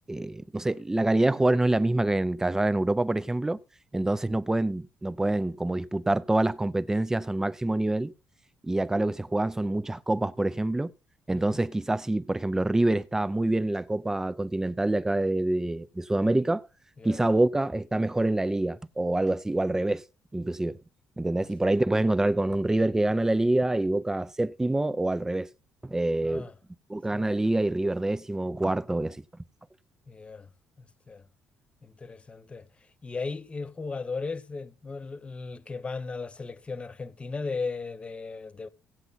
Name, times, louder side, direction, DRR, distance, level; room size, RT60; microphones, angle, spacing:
voice 1, 0.1-3.6 3.9-8.1 8.6-10.9 11.3-16.6 17.0-20.0 20.3-20.8 21.2-25.5 25.8-26.5 26.9-29.2, right 2 dB, 10° right, 0.6 m, -26 dB
voice 2, 11.3-11.6 17.0-17.2 21.4-21.5 26.2-26.5 27.1-27.2 30.1-30.5 30.8-31.3 31.8-32.7 33.0-38.7, left 4 dB, 25° left, 1.2 m, -36 dB
16.5 x 8.0 x 4.2 m
cardioid pair, 105°, 5 cm